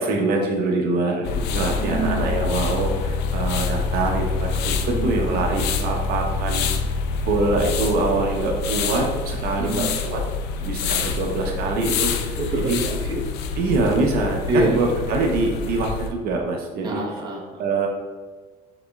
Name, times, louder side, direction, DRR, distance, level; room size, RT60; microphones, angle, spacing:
voice 1, 0.0-6.6 7.3-10.2 10.6-12.4 12.7-12.8 13.6-17.0 17.6-17.9, right 3 dB, 60° right, 0 dB, 0.8 m, -24 dB
sound 1, 1.2-16.1, left 4 dB, 80° left, 0.5 m, -26 dB
voice 2, 1.8-2.3 4.9-5.4 9.6-9.9 12.4-13.2 14.5-15.1 16.8-17.7, right 1 dB, 25° right, -2 dB, 0.9 m, -27 dB
5.9 x 3.9 x 2.3 m, 1.5 s
cardioid pair, 145°, 17 cm